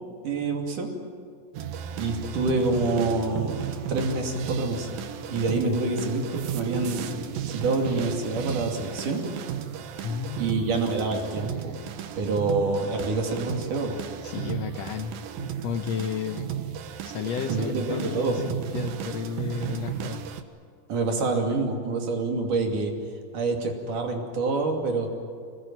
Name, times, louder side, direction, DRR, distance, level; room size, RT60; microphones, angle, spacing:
voice 1, 0.2-0.9 2.0-4.9 5.3-9.3 10.4-11.8 12.2-14.0 17.5-18.4 20.9-22.9 23.3-25.1, right 3 dB, 70° right, 2 dB, 4.2 m, -27 dB
sound 1, 1.5-20.4, right 10 dB, 90° right, 2.9 m, -34 dB
voice 2, 10.0-10.6 14.2-16.5 17.0-20.2, left 7 dB, 70° left, 7 dB, 1.6 m, -33 dB
25.0 x 20.0 x 9.2 m, 2.3 s
omnidirectional pair, 3.9 m